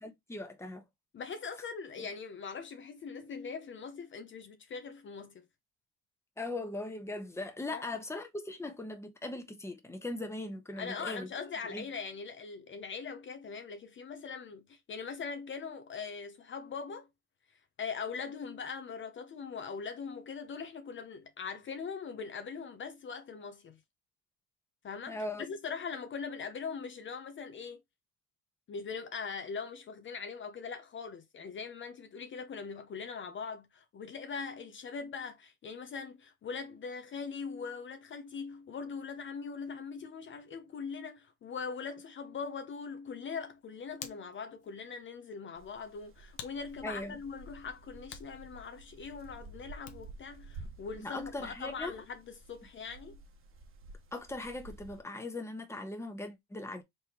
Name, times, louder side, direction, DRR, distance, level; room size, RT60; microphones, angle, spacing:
voice 1, 0.0-0.8 2.0-2.1 6.4-11.3 11.7-11.8 25.1-25.5 46.8-47.2 50.9-52.0 54.1-56.8, left 2 dB, 10° left, 1.1 m, -39 dB
voice 2, 1.1-5.4 7.7-7.8 10.8-17.1 17.8-23.8 24.8-27.8 28.7-53.2, left 5 dB, 40° left, 0.7 m, -41 dB
Hands, 43.4-50.3, left 10 dB, 75° left, 1.0 m, -53 dB
sound 1, 45.6-55.0, right 2 dB, 45° right, 1.2 m, -52 dB
4.3 x 3.5 x 2.9 m
cardioid pair, 110°, 31 cm